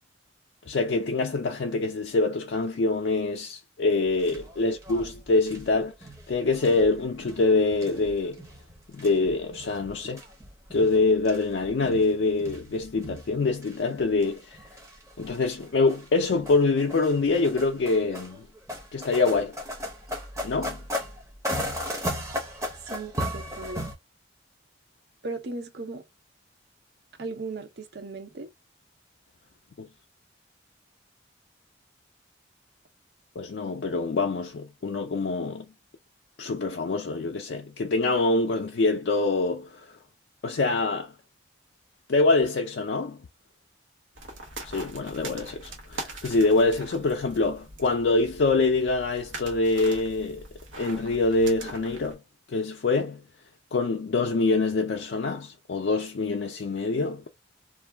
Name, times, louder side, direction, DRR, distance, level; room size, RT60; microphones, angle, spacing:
voice 1, 0.7-5.9 6.3-8.4 8.9-10.2 10.7-14.6 15.2-18.5 18.9-19.6 20.4-20.8 29.8-29.9 33.4-35.7 36.4-39.8 40.4-41.1 42.1-43.2 44.6-50.4 50.8-52.2 52.5-53.2 53.7-57.3, left 3 dB, 60° left, 0.4 m, -25 dB
sound 1, 4.1-24.0, equal, 15° right, 0.7 m, -37 dB
voice 2, 22.8-23.8 25.2-26.0 27.2-28.5, right 3 dB, 60° right, 0.6 m, -37 dB
sound 2, 44.2-52.1, right 2 dB, 80° right, 1.0 m, -42 dB
2.5 x 2.2 x 3.3 m
head